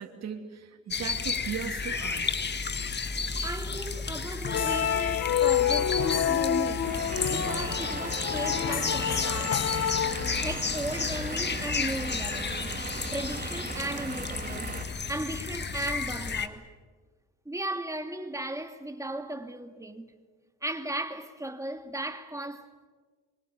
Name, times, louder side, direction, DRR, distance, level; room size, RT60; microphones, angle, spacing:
voice 1, 0.0-2.3 5.3-5.4, right 7 dB, 60° right, 2.8 m, -38 dB
sound 1, 0.9-16.5, left 5 dB, 35° left, 1.7 m, -33 dB
voice 2, 3.1-6.9 7.3-9.7 10.4-12.8 13.1-14.8 15.1-16.7 17.4-20.1 20.6-22.9, right 1 dB, 10° right, 2.5 m, -36 dB
sound 2, 4.4-10.7, left 9 dB, 55° left, 1.2 m, -28 dB
Vehicle / Engine, 6.8-14.8, right 4 dB, 30° right, 3.6 m, -38 dB
25.0 x 23.0 x 9.1 m
cardioid pair, 90°, 30 cm